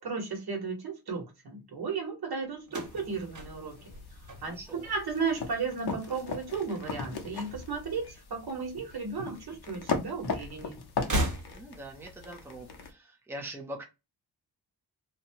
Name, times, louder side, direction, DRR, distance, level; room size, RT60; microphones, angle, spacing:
voice 1, 0.0-3.8 4.4-10.8, right 5 dB, 65° right, 1.2 m, -34 dB
sound 1, 2.6-5.0 5.3-5.9 6.9-8.0 8.2-8.3 9.5-9.6 10.9-12.0, right 1 dB, 45° right, 1.2 m, -35 dB
sound 2, 2.7-12.9, left 5 dB, 70° left, 0.8 m, -39 dB
voice 2, 4.5-4.9 11.5-13.8, right 1 dB, 5° right, 0.6 m, -43 dB
2.7 x 2.2 x 2.8 m
wide cardioid pair, 140°, 40 cm